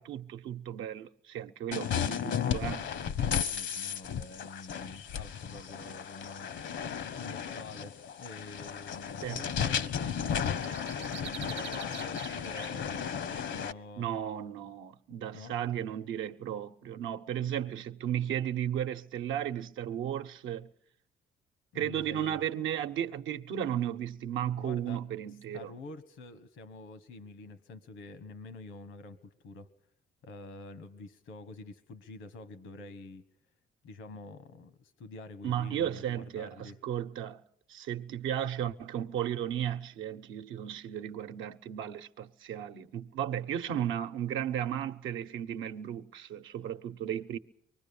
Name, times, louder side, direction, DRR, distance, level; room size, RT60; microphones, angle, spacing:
voice 1, 0.0-2.9 9.2-9.4 14.0-20.7 21.7-25.7 35.4-37.4 37.7-47.4, right 10 dB, 85° right, 0.9 m, -34 dB
sound 1, 1.7-13.7, left 8 dB, 70° left, 0.9 m, -34 dB
voice 2, 3.2-6.5 7.2-14.1 15.3-15.6 17.6-17.7 21.7-22.4 24.6-25.0 25.5-29.7 30.2-33.2 33.8-36.8, left 3 dB, 85° left, 1.4 m, -47 dB
sound 2, 8.4-13.4, right 9 dB, 65° right, 0.9 m, -47 dB
24.0 x 21.0 x 7.0 m
cardioid pair, 90°, 20 cm